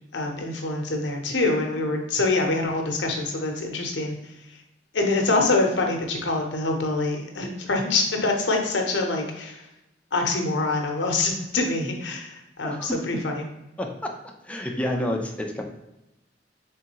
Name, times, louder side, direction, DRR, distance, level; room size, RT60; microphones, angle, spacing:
voice 1, 0.1-4.1 4.9-9.7 10.1-13.4, left 2 dB, 85° left, 2 dB, 0.8 m, -25 dB
voice 2, 12.6-12.9 13.8-14.1 14.4-15.6, left 1 dB, 5° left, 1 dB, 0.5 m, -29 dB
3.7 x 3.7 x 2.9 m, 0.92 s
head